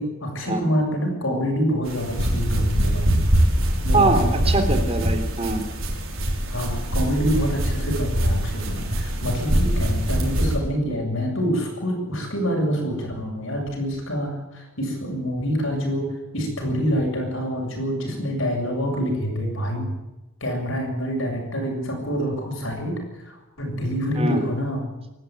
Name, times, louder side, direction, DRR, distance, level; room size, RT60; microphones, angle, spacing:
voice 1, 0.0-3.2 3.8-4.5 6.5-20.0 20.4-23.0 23.3-24.8, equal, 65° left, 1 dB, 7.4 m, -26 dB
sound 1, 1.9-10.5, equal, 70° right, 5.5 m, -23 dB
voice 2, 3.9-5.6 24.2-24.4, right 2 dB, 30° right, 7 dB, 3.4 m, -22 dB
26.5 x 13.5 x 9.4 m, 0.99 s
head